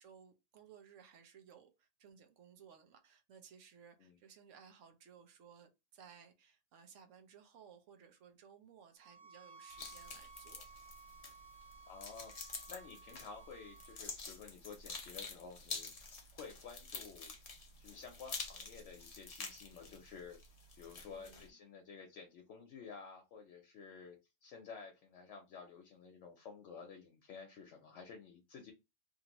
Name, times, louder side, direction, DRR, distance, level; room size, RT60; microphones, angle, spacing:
voice 1, 0.0-10.6 21.1-21.6, right 7 dB, 75° right, 1.0 m, -60 dB
sound 1, 9.0-14.0, right 4 dB, 45° right, 1.2 m, -57 dB
sound 2, 9.7-21.5, left 4 dB, 45° left, 0.5 m, -49 dB
voice 2, 11.9-17.3 17.8-28.7, left 5 dB, 70° left, 1.0 m, -52 dB
2.8 x 2.6 x 2.9 m
omnidirectional pair, 1.3 m